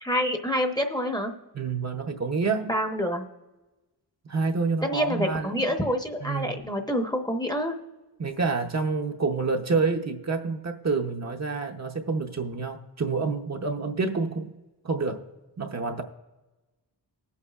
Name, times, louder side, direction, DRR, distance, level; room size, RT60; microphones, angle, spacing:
voice 1, 0.0-1.3 2.7-3.2 4.8-7.7, equal, 10° left, 3 dB, 0.8 m, -27 dB
voice 2, 1.5-2.7 4.3-5.6 6.2-6.5 8.2-14.5 14.8-15.2 15.6-16.0, right 4 dB, 40° right, 3 dB, 0.7 m, -28 dB
19.5 x 8.3 x 2.4 m, 1.1 s
wide cardioid pair, 160°, 40 cm